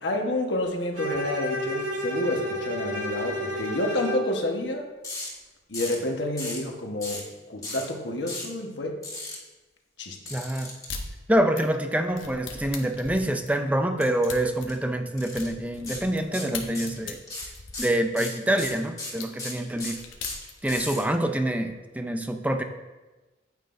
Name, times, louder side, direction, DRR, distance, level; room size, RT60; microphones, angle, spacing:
voice 1, 0.0-4.9 5.7-7.2 7.5-9.0 10.0-10.4, left 1 dB, 65° left, 2 dB, 1.2 m, -29 dB
Bowed string instrument, 0.9-4.3, equal, 85° right, 2.1 m, -30 dB
sound 1, 5.0-5.3 5.7-6.0 6.4-6.6 7.0-7.3 7.6-7.8 8.3-8.5 9.0-9.3 10.3-10.8 14.0-14.3 14.6-14.7 15.2-15.5 15.9-16.0 16.3-17.0 17.3-21.0, left 2 dB, 20° left, 2.0 m, -35 dB
voice 2, 10.3-10.7 11.3-17.2 17.8-20.0 20.6-22.6, right 1 dB, 10° right, 6 dB, 0.5 m, -26 dB
sound 2, 10.9-11.1 11.6-16.2 16.5-18.7 19.2-19.3 19.7-20.8, left 5 dB, 85° left, 1.1 m, -39 dB
9.3 x 9.0 x 2.6 m, 1.2 s
head